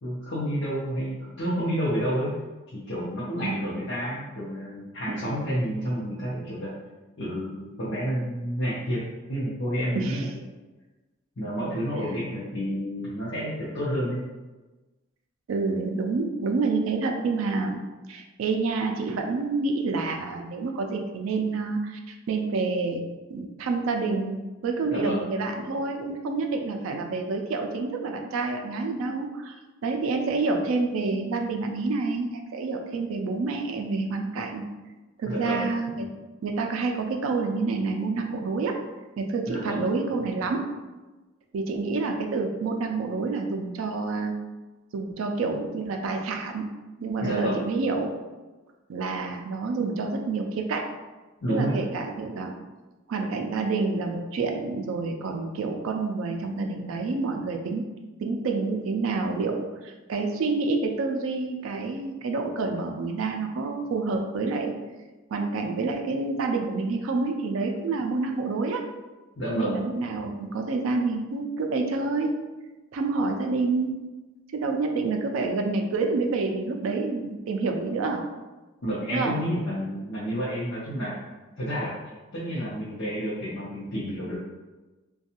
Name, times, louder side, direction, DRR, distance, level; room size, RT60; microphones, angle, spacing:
voice 1, 0.0-2.3 2.7-6.7 7.2-9.0 9.3-10.2 11.4-14.2 24.9-25.2 35.2-35.7 39.5-39.8 47.2-47.6 51.4-51.8 69.4-69.8 78.8-81.1 81.6-81.9 82.3-84.4, equal, 65° left, -10 dB, 0.7 m, -29 dB
voice 2, 10.0-10.3 11.9-12.0 15.5-17.8 18.1-29.5 29.8-34.6 35.2-36.1 36.4-38.8 39.2-40.7 41.5-44.3 44.9-46.7 47.0-48.2 48.9-50.9 51.5-52.6 53.1-57.8 58.2-64.7 65.3-68.8 69.5-72.4 72.9-74.0 74.5-78.2 79.1-79.4, right 3 dB, 80° right, 3 dB, 0.3 m, -28 dB
2.5 x 2.2 x 2.8 m, 1.2 s
head